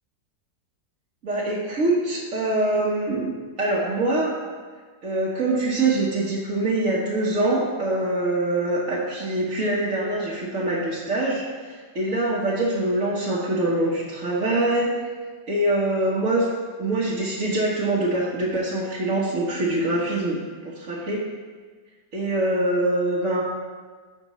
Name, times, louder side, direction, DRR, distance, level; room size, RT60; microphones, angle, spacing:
voice 1, 1.2-4.3 5.0-14.9 15.5-16.5 16.8-21.2 22.1-23.4, right 2 dB, 45° right, -7 dB, 1.5 m, -24 dB
15.5 x 5.2 x 3.1 m, 1.5 s
omnidirectional pair, 2.0 m